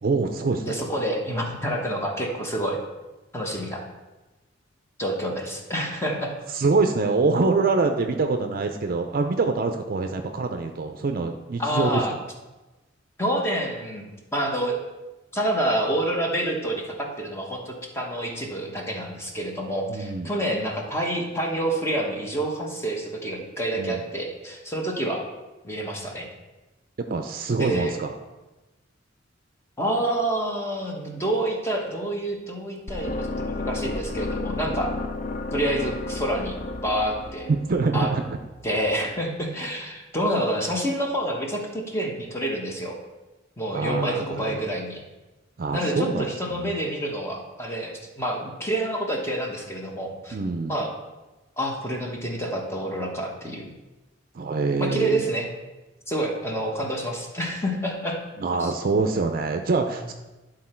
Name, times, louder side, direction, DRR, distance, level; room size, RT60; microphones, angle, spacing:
voice 1, 0.0-0.8 6.5-12.2 19.9-20.3 23.8-24.0 27.1-28.1 37.5-38.4 43.7-44.7 45.6-46.7 50.3-50.8 54.3-55.2 58.4-60.1, right 3 dB, 50° right, 5 dB, 0.5 m, -25 dB
voice 2, 0.7-2.8 3.3-3.8 5.0-6.3 11.6-12.1 13.2-14.8 15.3-25.2 25.6-26.3 27.6-27.9 29.8-34.9 35.5-37.5 37.9-38.1 38.6-43.0 43.6-45.0 45.7-50.4 50.7-50.9 51.6-53.7 54.8-55.5 56.1-58.2 58.6-58.7, right 1 dB, 15° left, 0 dB, 1.1 m, -28 dB
sound 1, 32.9-38.9, left 2 dB, 45° left, 0.5 m, -32 dB
11.0 x 3.8 x 4.4 m, 1.1 s
head